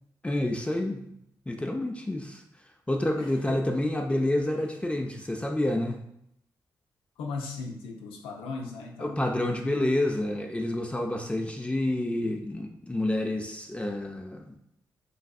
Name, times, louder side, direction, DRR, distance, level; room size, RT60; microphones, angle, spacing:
voice 1, 0.2-1.0 1.5-2.4 2.9-6.0 9.0-14.6, left 1 dB, 15° left, 2 dB, 0.4 m, -28 dB
voice 2, 3.2-3.7 7.2-9.3, left 4 dB, 90° left, 1 dB, 0.4 m, -37 dB
3.2 x 2.5 x 2.3 m, 0.75 s
supercardioid pair, 45°, 9 cm